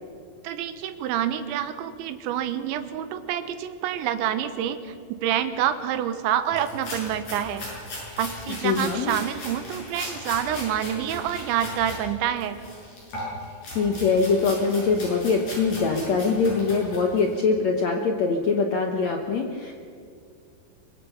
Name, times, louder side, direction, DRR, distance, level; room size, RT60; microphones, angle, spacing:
voice 1, 0.4-4.9 5.2-7.6 8.2-12.6, right 10 dB, 90° right, 10 dB, 3.5 m, -27 dB
sound 1, 6.5-12.0 12.4-17.3, left 1 dB, 45° left, 8.4 m, -38 dB
voice 2, 8.6-9.1 13.7-19.7, left 4 dB, 80° left, 2 dB, 1.5 m, -23 dB
24.5 x 22.0 x 5.8 m, 2.3 s
omnidirectional pair, 5.1 m